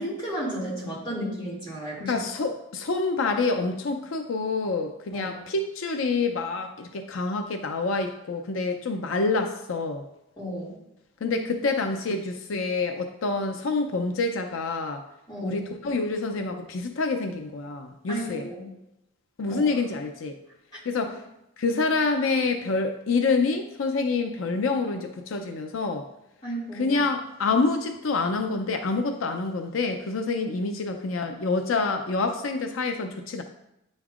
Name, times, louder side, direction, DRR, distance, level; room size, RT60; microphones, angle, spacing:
voice 1, 0.0-2.2 5.1-5.4 10.4-10.8 15.3-15.6 18.1-18.7 19.5-19.7 26.4-27.0, equal, 25° left, -7 dB, 2.3 m, -33 dB
voice 2, 2.1-10.1 11.2-15.0 15.4-18.5 19.4-20.4 20.9-21.2 21.6-26.1 26.7-33.4, left 3 dB, 90° left, 6 dB, 0.5 m, -27 dB
9.4 x 5.3 x 2.4 m, 0.84 s
head